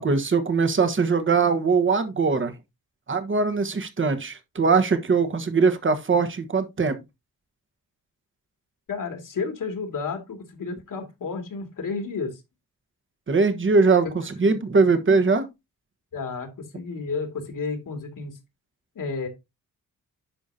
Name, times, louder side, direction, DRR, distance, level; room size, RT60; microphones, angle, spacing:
voice 1, 0.0-2.5 3.1-7.0 13.3-15.5, right 4 dB, 35° right, 1.3 m, -21 dB
voice 2, 8.9-12.4 14.4-14.5 16.1-16.5 16.7-18.4 18.9-19.3, left 4 dB, 65° left, 2.6 m, -31 dB
10.0 x 6.1 x 2.8 m
wide cardioid pair, 130°, 34 cm